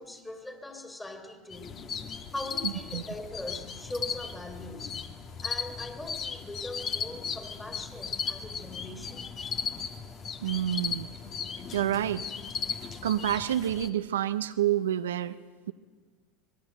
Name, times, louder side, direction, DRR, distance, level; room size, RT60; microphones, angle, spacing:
voice 1, 0.0-2.0 2.3-5.0 5.4-9.4, left 2 dB, 15° left, 3.0 m, -41 dB
sound 1, 1.5-13.9, left 6 dB, 40° left, 1.6 m, -36 dB
voice 2, 2.6-3.0 10.4-11.1 11.7-12.3 13.0-15.4, right 11 dB, 80° right, 0.7 m, -28 dB
25.5 x 20.0 x 7.8 m
hypercardioid pair, 80°, 0 cm